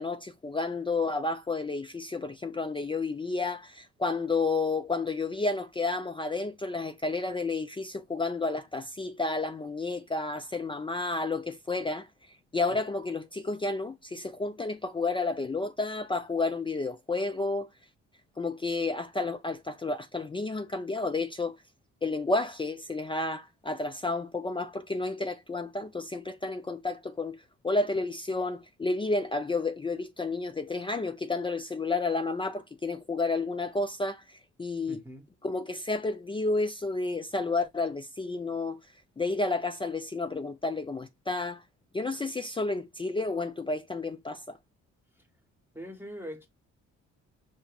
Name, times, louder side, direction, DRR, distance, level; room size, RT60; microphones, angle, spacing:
voice 1, 0.0-12.1 12.5-17.7 18.4-21.6 22.0-27.4 27.6-35.0 35.4-38.8 39.2-41.6 41.9-44.6, left 3 dB, 15° left, 0.4 m, -31 dB
voice 2, 34.9-35.3 45.7-46.5, equal, 5° right, 0.9 m, -42 dB
5.7 x 2.8 x 2.3 m
cardioid pair, 90°, 30 cm